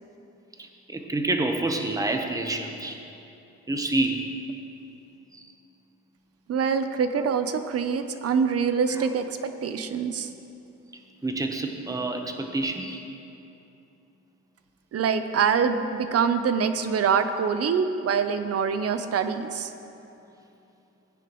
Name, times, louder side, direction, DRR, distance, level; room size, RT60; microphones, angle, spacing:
voice 1, 0.6-3.0 3.7-4.3 5.3-5.4 7.1-7.3 8.9-9.2 11.2-13.0, right 2 dB, 10° right, 4 dB, 1.0 m, -28 dB
voice 2, 6.5-10.3 14.9-19.7, right 6 dB, 50° right, 9 dB, 0.7 m, -25 dB
17.0 x 9.9 x 3.1 m, 2.9 s
cardioid pair, 90°, 30 cm